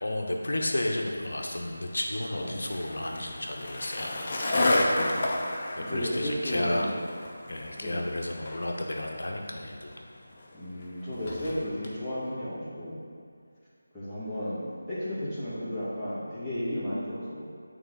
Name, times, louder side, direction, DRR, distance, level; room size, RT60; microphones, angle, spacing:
voice 1, 0.0-4.2 5.7-6.9 7.5-10.1, left 1 dB, 65° left, 1 dB, 0.9 m, -32 dB
Skateboard, 1.4-11.9, left 1 dB, 35° left, 0.7 m, -32 dB
voice 2, 4.5-5.4 5.8-7.0 7.8-8.0 10.5-13.0 13.9-14.6 14.9-17.4, equal, 5° left, -17 dB, 1.6 m, -34 dB
8.7 x 3.8 x 3.6 m, 2.3 s
figure-of-eight pair, 160°, 0 cm